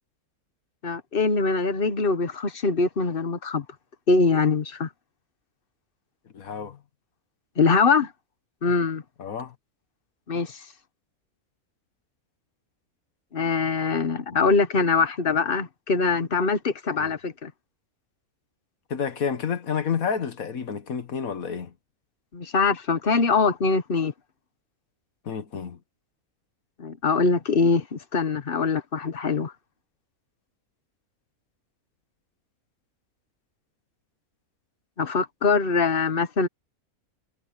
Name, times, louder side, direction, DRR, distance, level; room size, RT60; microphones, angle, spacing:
voice 1, 0.8-3.6 4.1-4.9 7.6-8.1 8.6-9.0 10.3-10.6 13.3-17.5 22.3-24.1 26.8-29.5 35.0-36.5, left 4 dB, 40° left, 1.3 m, -23 dB
voice 2, 6.3-6.8 9.2-9.5 14.3-14.6 16.9-17.1 18.9-21.7 25.3-25.8, left 6 dB, 70° left, 1.8 m, -30 dB
omnidirectional pair, 1.5 m